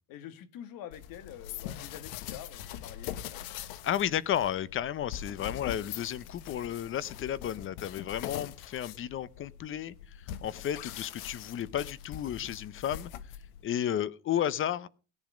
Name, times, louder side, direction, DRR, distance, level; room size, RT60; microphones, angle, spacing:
voice 1, 0.1-3.4, left 10 dB, 55° left, 12 dB, 2.0 m, -46 dB
sound 1, 0.9-13.7, left 11 dB, 85° left, 1.3 m, -43 dB
voice 2, 3.8-9.9 10.4-13.1 13.6-14.9, left 10 dB, 30° left, 21 dB, 0.7 m, -32 dB
17.5 x 10.5 x 5.1 m, 0.36 s
cardioid pair, 140°, 40 cm